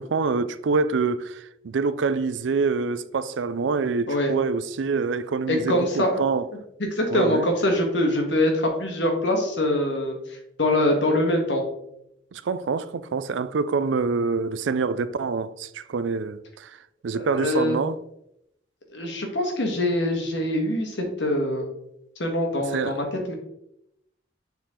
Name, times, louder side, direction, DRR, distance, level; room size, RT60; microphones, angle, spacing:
voice 1, 0.0-6.5 7.1-7.5 12.3-16.8 17.0-18.0 22.7-23.0, right 4 dB, 90° right, 0.4 m, -26 dB
voice 2, 5.5-6.2 6.8-10.2 10.6-11.6 17.1-17.8 18.9-21.7 22.2-23.3, left 1 dB, 75° left, 1.5 m, -24 dB
7.0 x 4.4 x 3.8 m
head